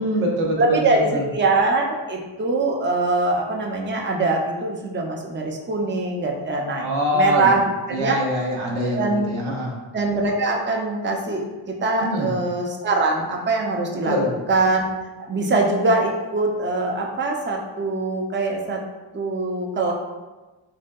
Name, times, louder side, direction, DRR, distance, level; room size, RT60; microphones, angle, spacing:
voice 1, 0.0-1.2 6.8-7.6 7.9-9.7 12.0-12.3 14.0-14.3, equal, 90° right, -2 dB, 0.7 m, -24 dB
voice 2, 0.6-6.9 7.1-7.6 7.9-8.2 8.9-9.3 9.9-14.2 14.5-14.9 15.3-18.8 19.1-19.9, right 3 dB, 25° right, 1 dB, 0.6 m, -23 dB
3.3 x 2.6 x 2.3 m, 1.2 s
cardioid pair, 50°, 47 cm